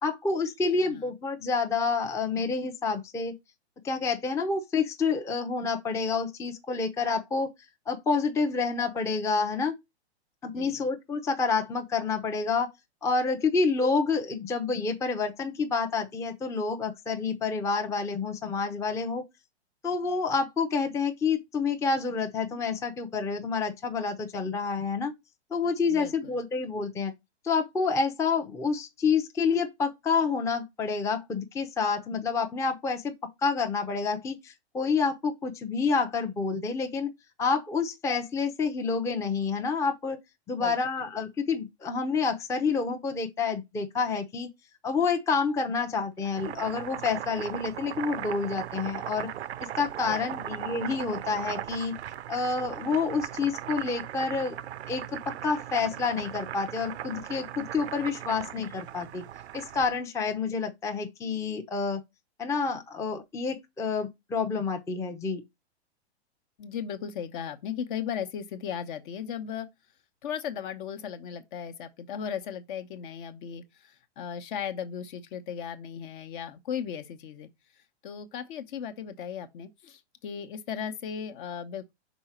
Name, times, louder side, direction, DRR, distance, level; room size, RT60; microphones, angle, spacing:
voice 1, 0.0-3.3 3.8-7.5 7.9-9.7 10.4-12.7 13.0-19.2 19.8-25.1 25.5-27.1 27.4-33.1 33.4-37.1 37.4-40.2 40.5-44.5 44.8-49.3 49.6-52.0 52.3-54.6 54.9-59.2 59.5-62.0 62.4-65.4, left 4 dB, 10° left, 0.6 m, -28 dB
voice 2, 10.4-10.9 25.9-26.4 40.6-40.8 50.1-50.5 66.6-69.7 70.2-77.5 78.0-81.9, left 8 dB, 50° left, 1.0 m, -37 dB
Boiling, 46.2-60.0, right 11 dB, 75° right, 0.6 m, -38 dB
5.5 x 4.0 x 4.3 m
hypercardioid pair, 110°, 33 cm